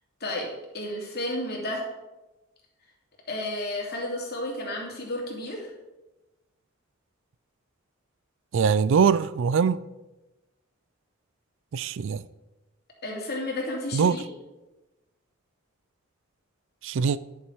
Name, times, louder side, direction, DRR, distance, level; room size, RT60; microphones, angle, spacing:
voice 1, 0.7-1.8 3.3-5.7 13.0-14.2, left 1 dB, 50° left, 2.7 m, -32 dB
voice 2, 8.5-9.8 11.7-12.2 13.9-14.2 16.8-17.2, right 6 dB, 65° right, 0.4 m, -22 dB
10.5 x 7.2 x 4.7 m
head